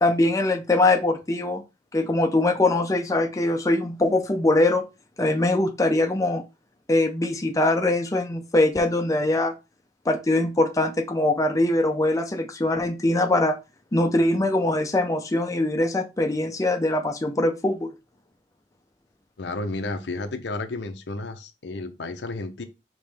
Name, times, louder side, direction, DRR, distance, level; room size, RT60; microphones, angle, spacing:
voice 1, 0.0-1.6 1.9-4.8 5.2-6.4 6.9-9.5 10.1-13.5 13.9-17.9, left 2 dB, 20° left, 0.5 m, -22 dB
voice 2, 19.4-22.6, left 2 dB, 75° left, 0.7 m, -32 dB
5.3 x 3.0 x 3.3 m
head